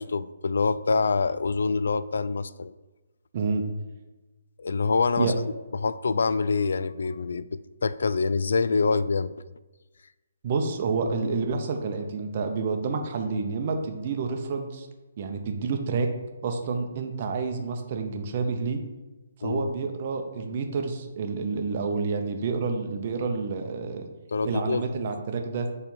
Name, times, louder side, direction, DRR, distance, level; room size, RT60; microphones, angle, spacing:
voice 1, 0.0-2.7 4.6-5.3 5.8-9.3 19.4-19.7 24.3-24.8, left 4 dB, 70° left, 15 dB, 0.3 m, -25 dB
voice 2, 3.3-3.6 5.2-5.3 10.4-14.9 15.2-16.1 16.4-18.8 19.4-24.1 24.4-25.7, right 4 dB, 35° right, 4 dB, 0.7 m, -29 dB
7.3 x 3.3 x 5.5 m, 1.1 s
hypercardioid pair, 170°, 0 cm